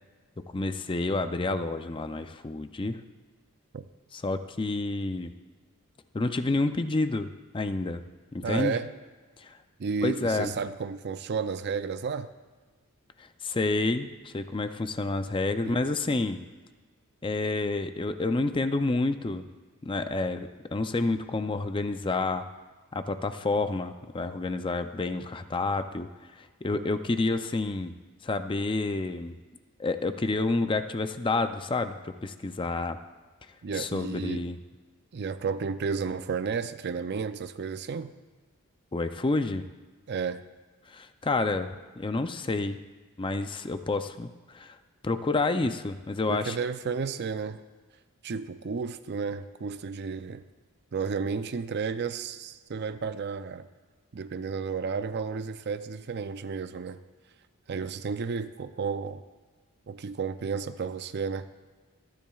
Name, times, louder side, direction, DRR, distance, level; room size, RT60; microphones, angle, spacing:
voice 1, 0.4-3.0 4.1-5.3 6.1-8.0 8.3-8.8 9.4-9.5 10.0-10.5 13.2-16.4 17.2-19.4 19.8-22.4 22.9-26.1 26.4-27.9 28.2-29.3 29.8-33.0 33.7-34.6 38.9-39.7 40.9-42.8 43.2-44.8 45.0-46.6, left 3 dB, 20° left, 9 dB, 0.5 m, -29 dB
voice 2, 8.4-8.9 9.8-12.3 15.6-15.8 26.7-26.9 33.6-34.5 35.1-38.1 40.1-40.4 45.6-45.7 46.3-47.6 48.2-50.4 50.9-53.7 54.1-57.0 57.7-59.2 59.9-61.5, right 5 dB, 50° right, 12 dB, 0.4 m, -32 dB
24.5 x 10.5 x 2.4 m, 1.4 s
head